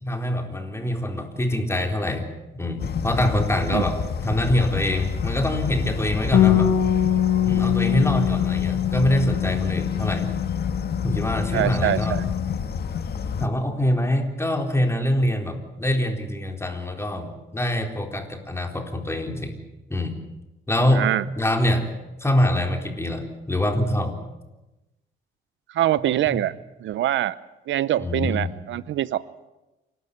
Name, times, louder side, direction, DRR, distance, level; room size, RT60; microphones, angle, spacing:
voice 1, 0.0-2.3 2.5-6.7 7.4-10.3 11.0-12.2 13.4-19.6 19.9-20.1 20.7-21.9 22.2-24.2 26.3-26.4 28.0-28.5, left 1 dB, 15° left, 4 dB, 4.0 m, -24 dB
sound 1, 2.8-13.5, left 6 dB, 55° left, 1.5 m, -29 dB
Bass guitar, 6.3-12.6, left 11 dB, 75° left, 2.2 m, -23 dB
voice 2, 11.5-12.2 20.9-21.2 25.7-26.5 26.8-27.4 27.7-29.2, right 13 dB, 75° right, 18 dB, 0.8 m, -24 dB
28.0 x 12.5 x 10.0 m, 1.0 s
cardioid pair, 90°, 20 cm